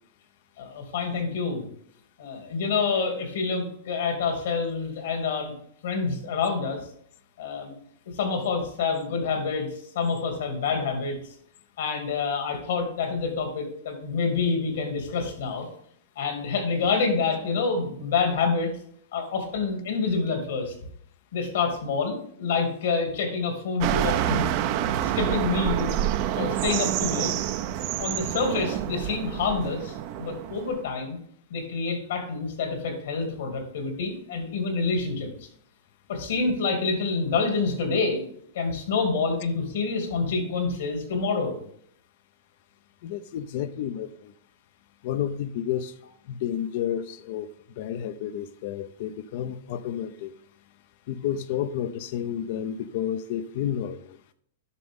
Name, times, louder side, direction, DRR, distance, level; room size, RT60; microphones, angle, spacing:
voice 1, 0.6-1.6 2.2-5.5 5.8-6.8 7.4-7.7 8.1-9.7 9.9-11.2 11.8-15.7 16.2-18.7 19.1-20.7 21.3-24.5 25.0-26.0 26.4-27.3 28.0-31.2 31.5-35.3 36.1-38.2 38.5-41.6, left 4 dB, 70° left, 4 dB, 2.7 m, -27 dB
sound 1, 23.8-30.8, right 11 dB, 50° right, 0.6 m, -27 dB
voice 2, 43.0-44.3 45.0-45.9 46.3-47.5 47.8-50.3 51.1-54.2, left 10 dB, 55° left, 13 dB, 0.6 m, -31 dB
9.8 x 6.0 x 3.7 m, 0.65 s
hypercardioid pair, 120°, 0 cm